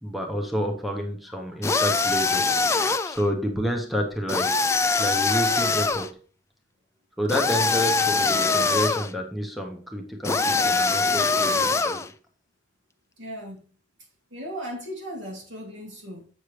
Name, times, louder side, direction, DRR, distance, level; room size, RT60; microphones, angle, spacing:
voice 1, 0.0-2.5 2.8-4.6 5.0-6.2 7.2-12.1, equal, ahead, 2 dB, 1.0 m, -29 dB
sound 1, 1.6-3.2 4.3-6.1 7.3-9.1 10.2-12.1, left 4 dB, 15° left, 0.3 m, -23 dB
voice 2, 13.2-13.6 14.3-16.3, equal, 75° right, -1 dB, 3.2 m, -37 dB
8.0 x 6.5 x 3.2 m, 0.40 s
head